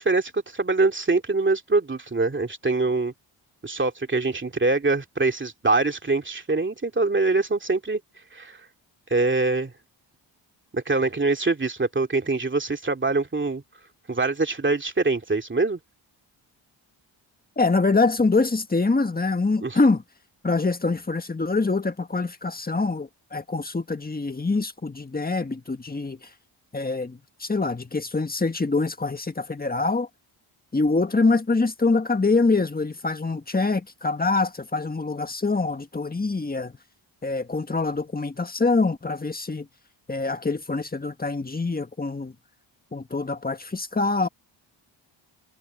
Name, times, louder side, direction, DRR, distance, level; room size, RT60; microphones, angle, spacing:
voice 1, 0.0-3.1 3.6-8.0 8.3-8.6 9.1-9.7 10.7-13.6 14.1-15.8 19.6-19.8, right 3 dB, 25° right, 2.5 m, -24 dB
voice 2, 17.6-20.0 20.4-26.3 26.7-30.1 30.7-36.7 37.2-39.7 40.1-42.3 42.9-44.3, left 3 dB, 20° left, 1.8 m, -24 dB
cardioid pair, 80°, 46 cm